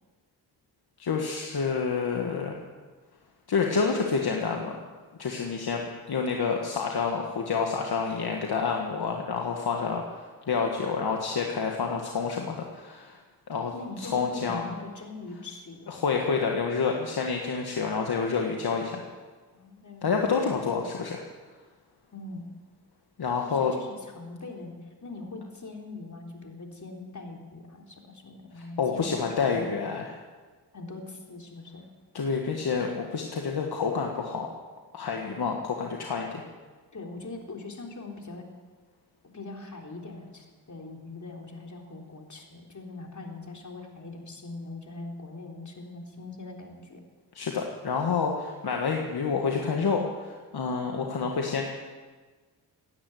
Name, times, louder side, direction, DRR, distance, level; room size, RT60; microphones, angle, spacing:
voice 1, 1.0-2.6 3.5-4.7 5.2-13.2 13.5-13.7 14.0-14.6 15.9-19.0 20.0-21.2 23.2-23.7 28.8-30.1 32.1-34.5 34.9-36.4 47.3-51.7, left 5 dB, 65° left, 1 dB, 1.8 m, -28 dB
voice 2, 13.7-16.2 19.5-20.6 22.1-22.5 23.4-29.7 30.7-31.8 36.9-38.5 39.3-47.0, left 2 dB, 45° left, 1 dB, 3.6 m, -42 dB
17.0 x 10.0 x 8.0 m, 1.4 s
cardioid pair, 55°, 41 cm